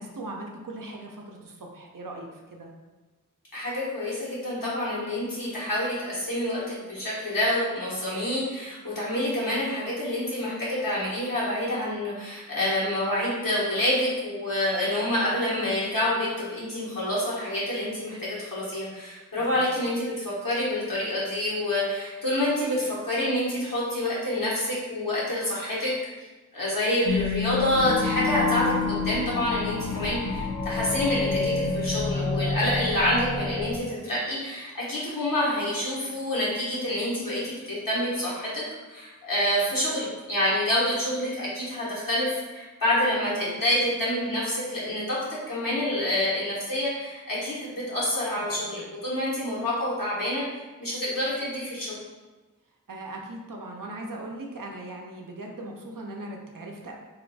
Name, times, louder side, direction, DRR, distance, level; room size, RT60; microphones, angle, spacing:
voice 1, 0.0-2.7 19.4-19.7 48.4-48.8 52.9-56.9, right 2 dB, 75° right, 0 dB, 0.6 m, -39 dB
voice 2, 3.5-25.9 26.5-38.6 38.9-45.2 45.5-50.4 50.8-51.9, left 1 dB, 85° left, -8 dB, 1.2 m, -27 dB
sound 1, 27.0-33.8, left 3 dB, 70° left, 0.5 m, -28 dB
2.6 x 2.2 x 4.0 m, 1.2 s
wide cardioid pair, 40°, 33 cm